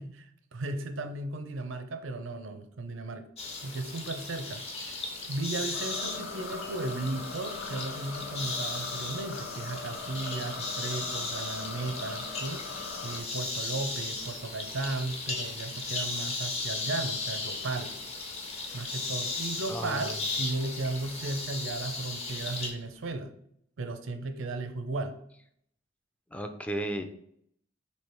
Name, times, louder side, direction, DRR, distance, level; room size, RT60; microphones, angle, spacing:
voice 1, 0.0-3.2 3.6-5.0 5.3-12.8 13.0-17.9 18.7-23.3 23.8-25.2, right 2 dB, 80° right, 8 dB, 0.5 m, -35 dB
sound 1, 3.4-22.7, left 3 dB, 35° left, 0.7 m, -36 dB
sound 2, 5.7-13.2, left 4 dB, 85° left, 0.6 m, -41 dB
sound 3, 13.3-23.1, left 2 dB, 60° left, 1.0 m, -52 dB
voice 2, 19.7-20.2 26.3-27.0, right 1 dB, 5° left, 6 dB, 0.3 m, -35 dB
3.2 x 2.7 x 4.4 m, 0.69 s
head